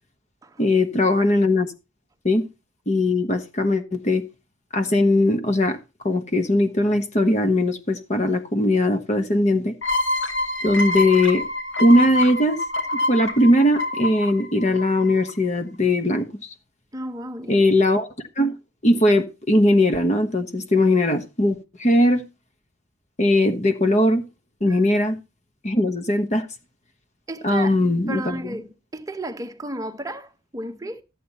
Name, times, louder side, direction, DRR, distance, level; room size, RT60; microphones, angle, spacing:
voice 1, 0.6-1.7 2.2-2.4 2.9-4.2 4.7-5.8 6.0-9.7 10.6-11.4 11.8-12.6 12.9-16.5 17.5-18.1 18.4-18.5 18.8-22.2 23.2-24.2 24.6-25.2 25.6-26.5 27.4-28.5, left 1 dB, 35° left, 1.2 m, -19 dB
sound 1, 9.8-15.3, left 2 dB, 75° left, 2.3 m, -26 dB
voice 2, 16.9-17.6 24.7-24.8 27.3-27.8 28.1-31.0, right 1 dB, 15° right, 0.9 m, -33 dB
13.5 x 8.5 x 4.2 m
head